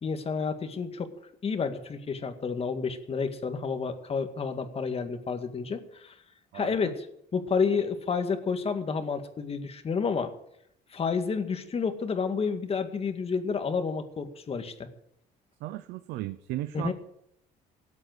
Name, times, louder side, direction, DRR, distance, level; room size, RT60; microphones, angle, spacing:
voice 1, 0.0-1.1 1.4-6.1 6.5-7.1 7.3-10.3 10.9-14.9 16.7-16.9, left 5 dB, 35° left, 7 dB, 2.1 m, -30 dB
voice 2, 6.5-6.9 15.6-16.9, right 15 dB, 90° right, 13 dB, 0.7 m, -36 dB
18.0 x 8.4 x 8.0 m, 0.75 s
cardioid pair, 110°, 17 cm